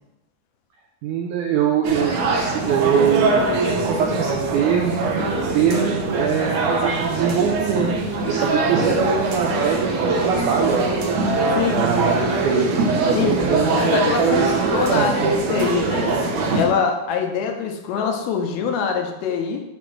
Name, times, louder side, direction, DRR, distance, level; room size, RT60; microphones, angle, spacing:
voice 1, 1.0-5.1 5.5-11.0 11.7-12.8 13.1-15.1, right 7 dB, 90° right, 1 dB, 1.7 m, -23 dB
sound 1, 1.8-16.7, right 3 dB, 70° right, 2.0 m, -22 dB
voice 2, 11.5-11.9 13.1-16.1 16.6-19.6, left 6 dB, 85° left, 4 dB, 2.6 m, -24 dB
7.0 x 3.1 x 6.0 m, 1.0 s
omnidirectional pair, 4.3 m